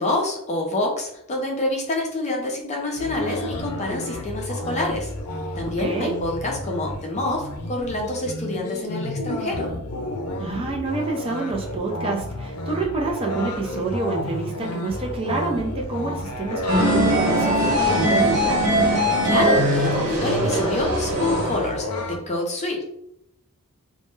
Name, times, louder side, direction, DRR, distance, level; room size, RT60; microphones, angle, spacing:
voice 1, 0.0-5.1 5.6-9.7 19.2-22.8, left 2 dB, 30° left, 0 dB, 0.5 m, -27 dB
sound 1, 3.0-22.2, left 1 dB, 85° left, 0.5 m, -31 dB
voice 2, 5.6-6.1 10.4-18.6, right 3 dB, 25° right, -1 dB, 0.4 m, -27 dB
sound 2, 16.7-21.6, equal, 90° right, 1.0 m, -21 dB
2.2 x 2.1 x 3.0 m, 0.76 s
head